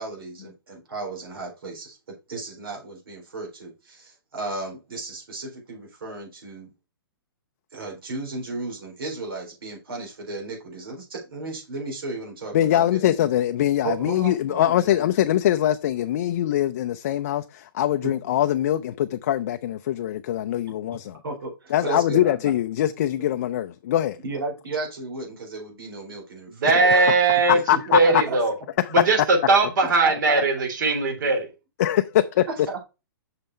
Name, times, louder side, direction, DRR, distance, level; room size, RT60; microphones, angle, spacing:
voice 1, 0.0-6.7 7.7-13.1 13.8-15.0 18.0-18.1 21.2-22.3 24.2-26.7 27.5-28.4 30.0-30.4 32.7-32.8, right 3 dB, 80° right, 4.0 m, -34 dB
voice 2, 12.5-21.2 21.7-24.2 26.7-27.1 27.7-28.2 28.8-28.9 31.8-32.5, left 12 dB, 40° left, 0.4 m, -23 dB
voice 3, 26.5-27.6 27.9-28.5 28.9-31.5, right 3 dB, 55° right, 2.8 m, -20 dB
6.6 x 5.4 x 4.3 m
hypercardioid pair, 165°, 12 cm